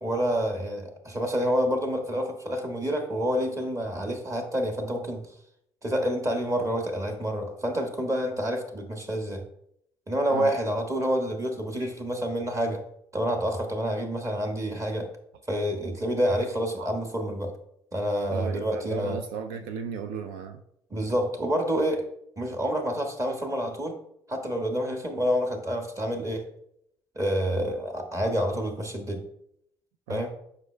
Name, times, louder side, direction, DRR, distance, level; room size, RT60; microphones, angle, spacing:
voice 1, 0.0-5.2 5.8-9.4 10.1-12.8 13.1-15.1 15.5-17.5 17.9-19.2 20.9-22.1 22.4-24.0 24.3-26.5 27.1-29.2 30.1-30.3, equal, 25° right, 3 dB, 1.5 m, -28 dB
voice 2, 18.3-20.6 30.1-30.3, right 6 dB, 75° right, 7 dB, 0.5 m, -35 dB
7.8 x 5.6 x 2.2 m, 0.74 s
hypercardioid pair, 50°, 12 cm